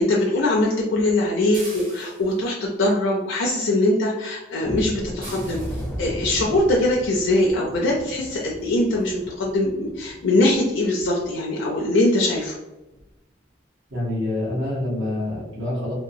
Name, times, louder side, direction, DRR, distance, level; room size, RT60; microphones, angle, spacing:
voice 1, 0.0-5.6 6.0-12.6, left 1 dB, 80° left, -2 dB, 0.4 m, -22 dB
sound 1, 1.5-2.5 5.2-6.0 7.5-7.6 8.1-8.3 8.6-8.7 9.0-9.1, right 2 dB, 45° right, 1.1 m, -41 dB
sound 2, 4.6-11.3 11.7-11.9 12.3-12.4 12.9-13.1, equal, 5° left, 0.4 m, -36 dB
voice 2, 13.9-15.9, left 1 dB, 75° right, -7 dB, 1.0 m, -26 dB
2.9 x 2.2 x 2.6 m, 1.0 s
head